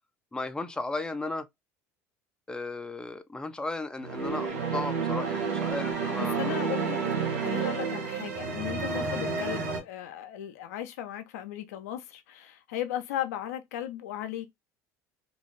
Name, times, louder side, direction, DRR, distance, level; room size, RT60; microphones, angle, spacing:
voice 1, 0.3-1.5 2.5-6.5 8.9-9.1, left 2 dB, 10° left, 0.4 m, -35 dB
sound 1, 4.0-9.8, right 5 dB, 85° right, 0.9 m, -30 dB
voice 2, 6.2-14.5, left 12 dB, 80° left, 0.5 m, -36 dB
2.5 x 2.3 x 3.0 m
hypercardioid pair, 80°, 8 cm